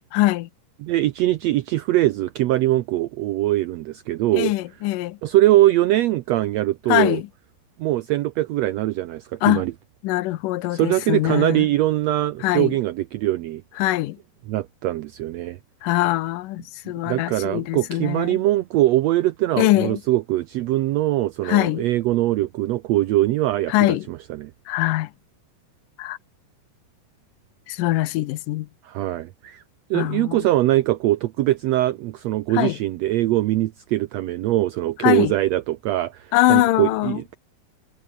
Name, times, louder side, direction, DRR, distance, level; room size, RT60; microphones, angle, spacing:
voice 1, 0.1-0.5 4.3-5.2 6.9-7.3 9.4-9.6 10.0-11.7 12.4-12.8 13.8-14.2 15.8-18.4 19.6-20.0 21.4-21.9 23.7-24.1 24.7-25.1 26.0-26.2 27.7-28.7 29.9-30.5 32.5-32.8 35.0-35.3 36.3-37.2, left 17 dB, 80° left, 2.4 m, -22 dB
voice 2, 0.8-4.5 5.2-7.2 7.8-9.7 10.7-13.6 14.5-15.6 16.8-24.5 28.8-29.6 29.9-37.4, right 15 dB, 85° right, 1.5 m, -22 dB
omnidirectional pair, 3.8 m